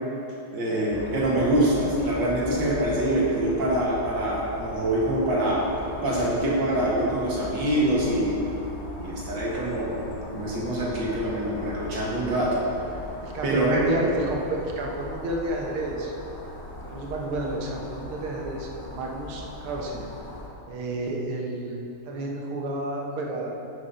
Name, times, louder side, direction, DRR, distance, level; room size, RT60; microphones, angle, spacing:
voice 1, 0.5-5.7 6.0-8.4 9.0-10.0 10.3-12.6 13.4-13.8, right 1 dB, 60° right, -5 dB, 2.3 m, -25 dB
sound 1, 0.9-20.5, left 1 dB, 35° left, 0.9 m, -39 dB
voice 2, 13.2-16.1 16.8-20.1 20.7-21.8 22.1-23.5, right 2 dB, 90° right, 0 dB, 2.0 m, -30 dB
7.6 x 7.2 x 5.5 m, 2.8 s
omnidirectional pair, 2.3 m